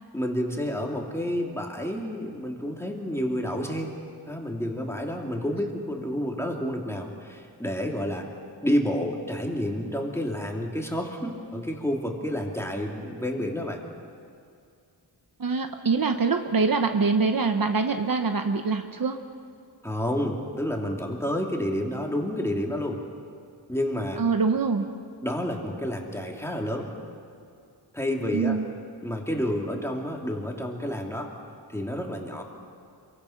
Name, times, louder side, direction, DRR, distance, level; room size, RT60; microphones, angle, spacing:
voice 1, 0.1-3.9 4.3-8.3 8.6-13.8 19.8-23.0 23.7-24.2 25.2-26.9 27.9-28.6 29.0-31.3 31.7-32.4, equal, 5° left, 0 dB, 2.7 m, -29 dB
voice 2, 15.4-19.2 24.2-24.9 28.3-28.7, right 4 dB, 50° right, 6 dB, 1.1 m, -24 dB
27.5 x 23.0 x 5.8 m, 2.3 s
wide cardioid pair, 125°, 43 cm